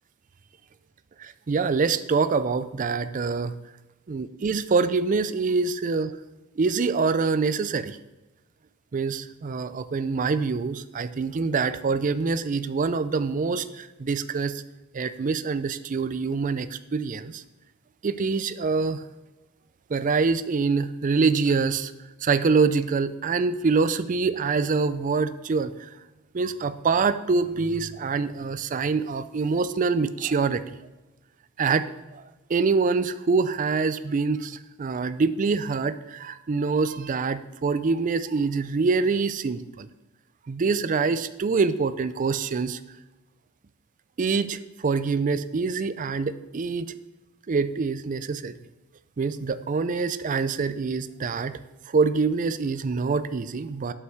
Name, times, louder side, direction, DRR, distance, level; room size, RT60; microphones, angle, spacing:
voice 1, 1.2-3.5 4.1-6.1 6.6-8.0 8.9-14.5 14.9-17.4 18.0-19.0 19.9-21.9 22.2-25.9 26.3-30.6 31.6-31.9 32.5-39.9 40.5-42.8 44.2-46.9 47.5-48.5 49.2-51.6 51.9-53.9, right 4 dB, 35° right, 14 dB, 0.4 m, -25 dB
7.9 x 5.7 x 6.5 m, 1.0 s
head